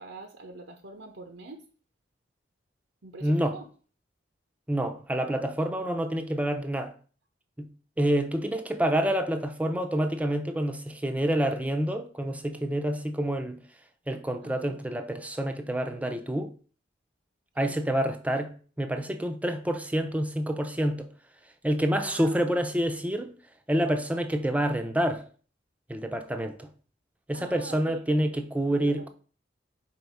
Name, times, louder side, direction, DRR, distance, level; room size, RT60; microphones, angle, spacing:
voice 1, 0.0-1.7 3.0-3.7 14.4-14.8 17.6-17.8 22.0-22.7 27.3-28.3 28.7-29.1, right 2 dB, 80° right, 0.8 m, -43 dB
voice 2, 3.2-3.6 4.7-6.9 7.6-7.7 8.0-13.6 14.1-16.5 17.6-21.1 21.6-23.3 23.7-25.2 25.9-26.7 27.3-29.1, right 1 dB, 10° right, 0.6 m, -28 dB
4.6 x 4.3 x 5.5 m
head